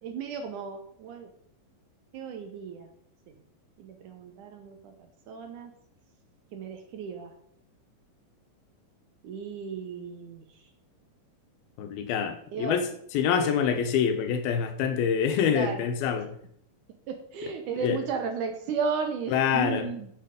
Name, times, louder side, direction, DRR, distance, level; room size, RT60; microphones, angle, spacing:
voice 1, 0.0-1.3 2.1-2.9 3.8-4.9 5.3-5.7 6.5-7.3 9.2-10.5 12.5-12.8 13.3-13.5 15.5-15.9 17.1-20.1, right 5 dB, 70° right, 6 dB, 2.1 m, -34 dB
voice 2, 11.8-12.9 13.1-16.3 17.8-18.0 19.3-19.9, left 7 dB, 85° left, 7 dB, 2.9 m, -26 dB
8.1 x 6.9 x 5.2 m, 0.66 s
omnidirectional pair, 4.2 m